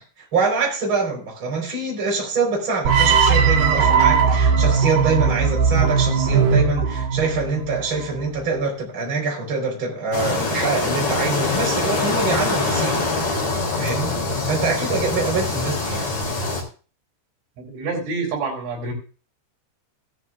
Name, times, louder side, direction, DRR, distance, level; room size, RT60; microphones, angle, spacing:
voice 1, 0.0-13.0 13.8-16.2, right 4 dB, 30° right, -1 dB, 4.4 m, -25 dB
sound 1, 2.9-8.0, right 6 dB, 65° right, 3.6 m, -18 dB
sound 2, 10.1-16.6, left 3 dB, 40° left, 4.2 m, -24 dB
voice 2, 17.7-18.9, right 3 dB, 80° right, 1 dB, 6.0 m, -27 dB
16.5 x 11.0 x 2.5 m, 0.36 s
omnidirectional pair, 5.4 m